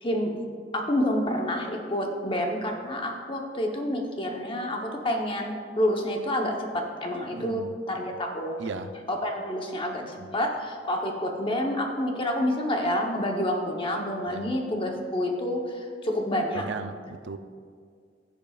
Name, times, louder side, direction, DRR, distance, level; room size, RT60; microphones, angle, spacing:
voice 1, 0.0-0.3 0.7-7.6 7.9-8.6 9.1-16.6, left 1 dB, 30° left, 1.0 m, -28 dB
voice 2, 7.3-7.7 8.6-8.9 10.2-10.3 14.3-14.5 16.5-17.4, right 4 dB, 80° right, 0.5 m, -37 dB
15.5 x 7.0 x 2.4 m
head